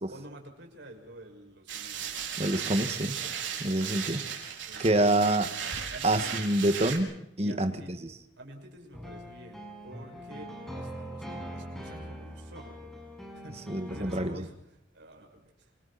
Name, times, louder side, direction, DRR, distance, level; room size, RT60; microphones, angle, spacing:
voice 1, 0.1-2.3 4.6-5.1 5.9-6.4 7.4-8.0 8.4-10.5 10.7-12.9 13.3-14.5 14.9-15.7, right 1 dB, 70° right, 2 dB, 6.5 m, -49 dB
sound 1, 1.7-7.0, right 8 dB, 85° right, 5.1 m, -36 dB
voice 2, 2.4-3.1 3.6-4.5 4.8-5.5 6.0-7.1 7.4-7.7 13.7-14.4, right 1 dB, 35° right, 8 dB, 1.9 m, -26 dB
sound 2, 8.9-14.3, equal, ahead, 6.0 m, -42 dB
28.0 x 24.0 x 4.3 m, 0.81 s
head